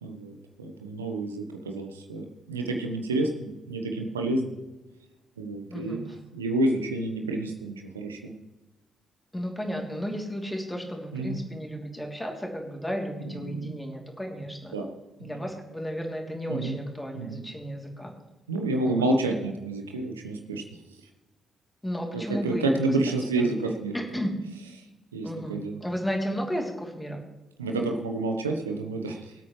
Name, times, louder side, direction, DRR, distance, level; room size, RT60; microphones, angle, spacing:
voice 1, 0.0-4.6 5.4-6.1 6.3-8.3 11.1-11.4 13.3-13.7 14.7-14.9 15.2-15.4 16.5-16.8 17.1-17.4 18.5-20.6 22.1-23.9 24.8-24.9 25.1-25.8 27.6-29.3, right 2 dB, 85° right, 3 dB, 1.2 m, -29 dB
voice 2, 5.7-6.0 9.3-14.7 15.2-18.1 18.8-19.0 21.8-22.8 23.1-23.5 23.9-24.3 25.2-27.2, equal, 10° left, 1 dB, 3.1 m, -33 dB
23.5 x 8.5 x 3.3 m, 1.1 s
figure-of-eight pair, 40°, 0 cm